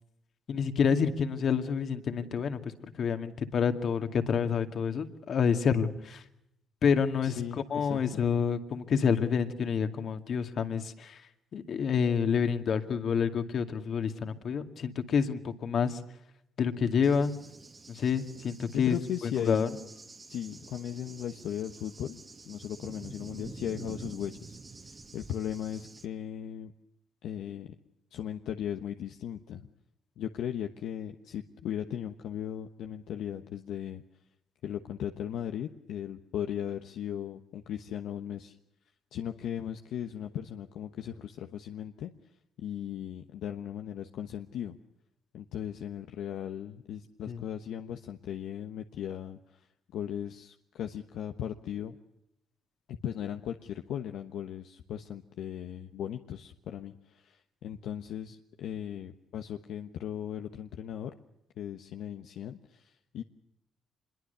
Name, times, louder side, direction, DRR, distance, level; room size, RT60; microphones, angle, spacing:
voice 1, 0.5-2.7 3.0-6.2 6.8-11.2 11.5-16.0 16.6-17.3 17.9-19.0 19.2-19.7 47.3-47.4, left 6 dB, 60° left, 7 dB, 2.3 m, -28 dB
voice 2, 7.2-8.3 18.7-19.6 20.3-22.2 22.5-26.7 27.2-27.7 28.1-29.7 30.2-34.0 34.6-38.6 39.1-42.1 42.6-44.8 45.3-52.0 52.9-61.1 61.6-63.2, left 10 dB, 75° left, 5 dB, 1.2 m, -37 dB
Cricket / Thunder, 17.0-26.0, right 3 dB, 30° right, 2.2 m, -48 dB
25.0 x 22.5 x 6.9 m, 0.84 s
cardioid pair, 80°, 0 cm